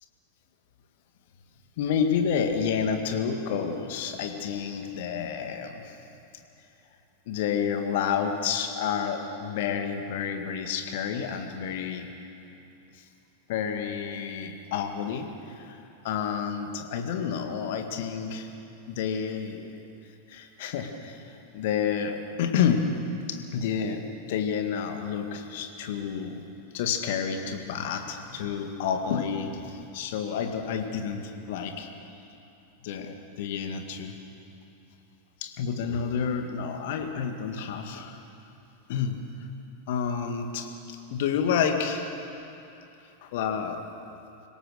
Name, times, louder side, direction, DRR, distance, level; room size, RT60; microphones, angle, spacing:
voice 1, 1.8-6.0 7.3-12.1 12.9-13.0 13.5-15.8 16.0-18.5 18.9-19.7 20.3-22.9 23.3-26.4 26.7-31.9 32.8-34.2 35.4-38.2 38.9-39.5 39.9-42.1 43.2-43.8, left 7 dB, 50° left, 5 dB, 2.0 m, -29 dB
25.5 x 17.5 x 6.7 m, 2.9 s
figure-of-eight pair, 90°, 0 cm